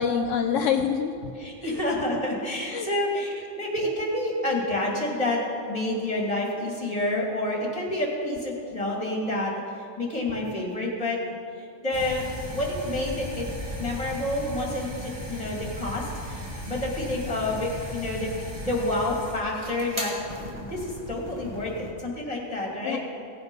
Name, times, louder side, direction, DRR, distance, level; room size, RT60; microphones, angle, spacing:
voice 1, 0.0-1.3 1.6-1.8 2.7-2.9 22.8-23.0, left 7 dB, 75° left, 5 dB, 1.0 m, -26 dB
voice 2, 1.4-5.4 5.7-9.5 10.0-11.2 11.8-12.2 12.5-13.5 13.8-16.0 16.3-18.3 18.6-20.1 20.7-23.0, left 1 dB, 30° left, -2 dB, 2.4 m, -28 dB
sound 1, 11.9-21.9, equal, 20° right, 1.9 m, -37 dB
17.0 x 8.0 x 5.3 m, 2.5 s
omnidirectional pair, 1.3 m